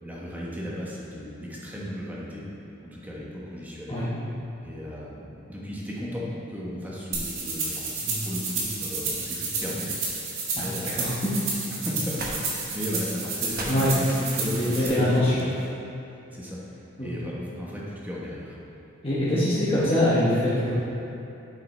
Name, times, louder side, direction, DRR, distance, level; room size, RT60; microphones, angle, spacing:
voice 1, 0.0-2.4 2.9-4.0 4.6-10.3 10.5-11.1 11.7-15.5 16.3-16.6 17.0-18.6, equal, 10° right, -6 dB, 1.3 m, -35 dB
sound 1, 7.1-14.9, right 4 dB, 75° right, 1.7 m, -31 dB
voice 2, 10.9-11.4 13.6-13.9 14.4-15.3 17.0-17.1 19.0-20.7, left 1 dB, 30° left, -10 dB, 1.3 m, -23 dB
sound 2, 12.2-12.4 12.7-12.8 13.4-15.7, right 2 dB, 45° right, 1.0 m, -38 dB
7.8 x 5.8 x 4.3 m, 2.9 s
head